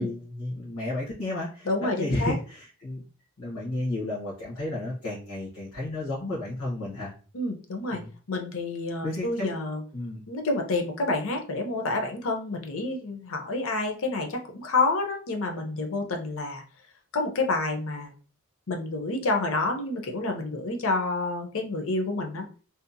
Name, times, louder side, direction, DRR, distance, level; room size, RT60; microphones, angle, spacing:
voice 1, 0.0-3.0 3.4-7.1 7.9-8.1 9.0-9.5 9.9-10.2, left 2 dB, 90° left, -6 dB, 1.0 m, -32 dB
voice 2, 1.7-2.3 7.3-8.0 8.3-9.8 10.3-16.6 17.1-18.1 18.7-22.5, left 2 dB, 65° left, 3 dB, 0.6 m, -28 dB
2.7 x 2.1 x 2.5 m, 0.38 s
head